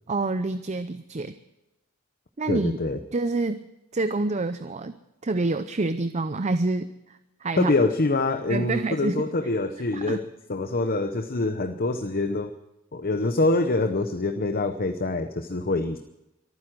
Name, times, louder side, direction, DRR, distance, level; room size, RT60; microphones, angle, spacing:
voice 1, 0.1-1.4 2.4-2.8 3.1-3.7 3.9-4.9 5.2-7.7 8.5-9.3 9.9-10.2, right 3 dB, 30° right, 11 dB, 0.6 m, -27 dB
voice 2, 2.5-3.0 7.6-12.5 12.9-16.0, left 2 dB, 45° left, 8 dB, 0.8 m, -25 dB
23.5 x 9.5 x 6.1 m, 0.93 s
head